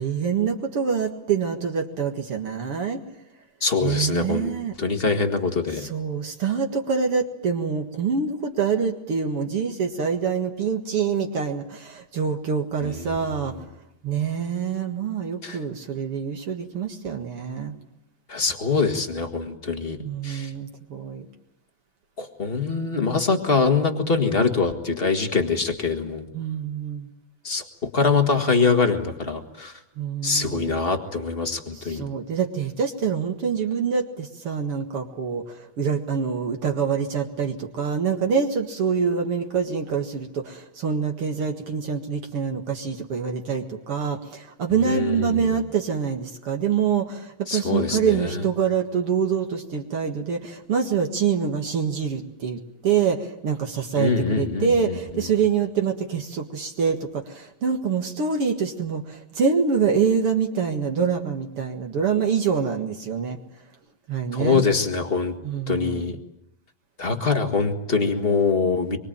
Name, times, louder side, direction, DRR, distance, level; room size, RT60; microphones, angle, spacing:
voice 1, 0.0-3.0 3.8-4.7 5.7-13.5 14.0-17.8 20.0-21.2 26.3-27.1 30.0-30.8 31.7-63.4 64.1-64.6 65.4-66.2, right 6 dB, 50° right, 4 dB, 2.2 m, -25 dB
voice 2, 3.6-4.5 4.8-5.9 12.8-13.2 15.4-15.6 18.3-20.0 20.2-20.5 22.2-26.3 27.4-27.6 27.9-29.7 30.2-32.0 44.8-45.5 47.5-48.2 54.0-54.7 64.3-65.3 65.7-66.2 67.0-69.0, left 4 dB, 35° left, 5 dB, 0.9 m, -23 dB
25.5 x 24.0 x 9.0 m, 0.83 s
omnidirectional pair, 4.0 m